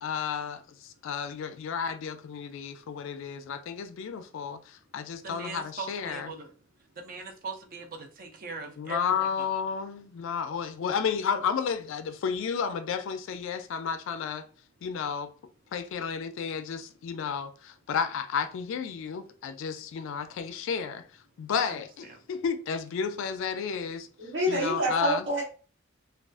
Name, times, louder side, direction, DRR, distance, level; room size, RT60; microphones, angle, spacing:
voice 1, 0.0-6.3 8.8-14.4 14.8-15.3 15.7-21.0 21.4-24.1 24.5-25.2, left 6 dB, 65° left, 0.3 m, -32 dB
voice 2, 5.2-9.5 21.7-22.3 24.5-24.7, right 4 dB, 45° right, 0.5 m, -42 dB
voice 3, 24.2-25.4, equal, 60° right, 0.8 m, -27 dB
2.3 x 2.3 x 2.4 m
head